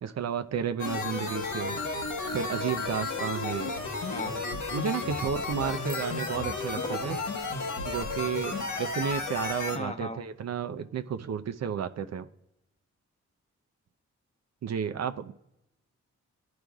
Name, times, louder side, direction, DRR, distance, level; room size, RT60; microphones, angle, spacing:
voice 1, 0.0-1.8 2.3-3.8 4.7-7.2 7.8-12.3 14.6-15.3, right 8 dB, 60° right, 8 dB, 0.6 m, -32 dB
sound 1, 0.8-9.8, left 3 dB, 80° left, 1.2 m, -33 dB
voice 2, 4.1-4.4 6.9-7.1 9.7-10.2, left 1 dB, 25° left, 6 dB, 0.9 m, -37 dB
Bicycle bell, 5.8-7.6, left 4 dB, 65° left, 1.1 m, -51 dB
14.0 x 5.1 x 2.4 m, 0.87 s
cardioid pair, 70°, 29 cm